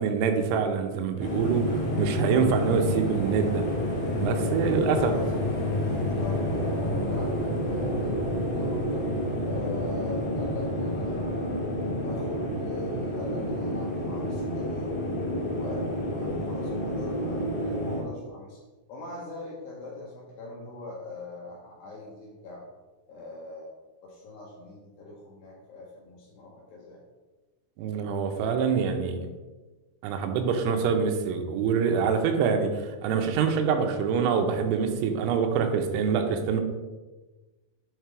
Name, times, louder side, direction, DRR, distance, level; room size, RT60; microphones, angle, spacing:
voice 1, 0.0-3.6 4.2-5.1 27.8-29.2 30.0-36.6, right 6 dB, 85° right, 5 dB, 3.4 m, -25 dB
sound 1, 1.2-18.0, left 1 dB, 55° left, 1.4 m, -29 dB
voice 2, 4.9-9.0 9.5-11.6 12.0-15.0 15.4-18.6 18.9-22.6 23.1-23.7 24.0-27.0, left 2 dB, 75° left, -3 dB, 2.6 m, -41 dB
8.2 x 3.7 x 4.7 m, 1.2 s
omnidirectional pair, 5.9 m